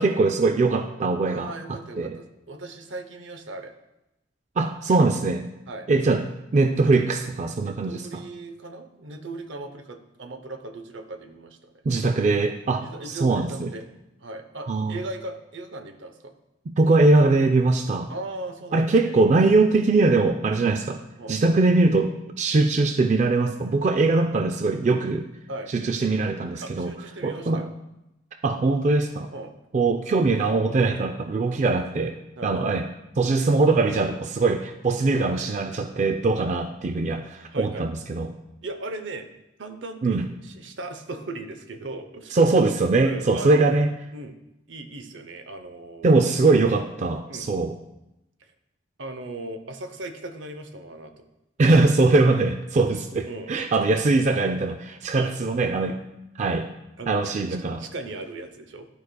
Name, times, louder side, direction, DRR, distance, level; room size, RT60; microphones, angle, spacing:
voice 1, 0.0-2.2 4.6-5.4 5.9-6.2 6.5-8.2 11.9-13.7 14.7-15.0 16.7-18.1 18.7-21.0 21.3-25.3 25.7-26.9 27.2-27.7 28.4-29.3 29.7-32.2 32.4-32.8 33.2-38.3 40.0-40.3 42.3-43.9 46.0-47.7 51.6-56.0 56.4-56.7 57.1-57.8, right 3 dB, 40° right, 7 dB, 0.3 m, -21 dB
voice 2, 1.3-3.8 5.7-5.9 7.7-11.7 12.8-13.9 14.2-16.3 18.1-19.1 21.2-21.4 25.5-25.7 26.6-27.7 29.3-29.5 32.4-32.5 36.3-36.5 37.5-37.8 38.6-39.3 39.6-42.4 43.0-43.7 44.1-44.4 44.7-46.3 47.3-47.5 48.4-48.5 49.0-51.2 53.3-53.5 55.2-55.3 57.0-58.9, right 2 dB, 80° right, 8 dB, 0.7 m, -37 dB
12.0 x 4.8 x 2.2 m, 0.91 s
head